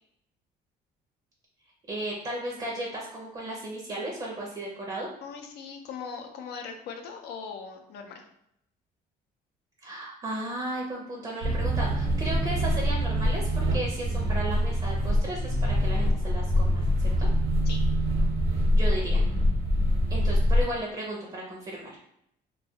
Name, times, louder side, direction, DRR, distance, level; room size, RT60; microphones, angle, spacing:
voice 1, 1.9-5.1 9.8-17.3 18.7-19.2 20.1-21.9, right 1 dB, 30° right, -2 dB, 0.6 m, -35 dB
voice 2, 5.2-8.2 17.7-17.9, left 6 dB, 75° left, 4 dB, 0.5 m, -40 dB
sound 1, 11.4-20.6, equal, 70° right, 0.9 m, -24 dB
2.3 x 2.3 x 2.7 m, 0.75 s
cardioid pair, 110°, 17 cm